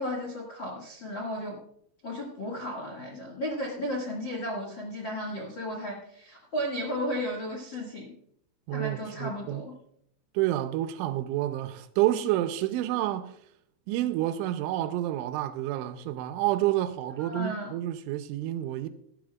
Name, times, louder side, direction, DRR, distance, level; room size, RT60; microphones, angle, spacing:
voice 1, 0.0-1.6 2.0-8.1 8.7-9.7 17.2-17.7, equal, 70° left, 1.1 m, -34 dB
voice 2, 8.7-9.6 10.3-13.3 13.9-18.9, right 14 dB, 85° right, 3.0 m, -29 dB
18.0 x 12.0 x 2.4 m
omnidirectional pair, 5.6 m